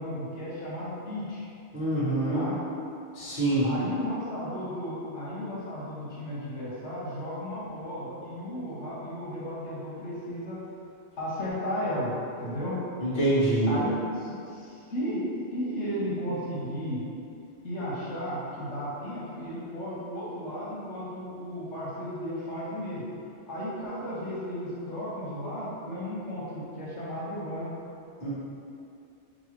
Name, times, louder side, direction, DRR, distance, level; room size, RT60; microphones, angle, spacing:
voice 1, 0.0-1.5 2.3-2.5 3.6-10.6 11.2-12.8 13.7-15.2 15.5-17.0 17.6-23.1 23.5-27.7, equal, 75° left, -8 dB, 1.3 m, -34 dB
voice 2, 1.7-2.4 3.1-3.7 13.0-13.7 28.2-28.3, right 1 dB, 45° left, -10 dB, 1.3 m, -25 dB
5.4 x 2.6 x 3.0 m, 2.6 s
omnidirectional pair, 1.2 m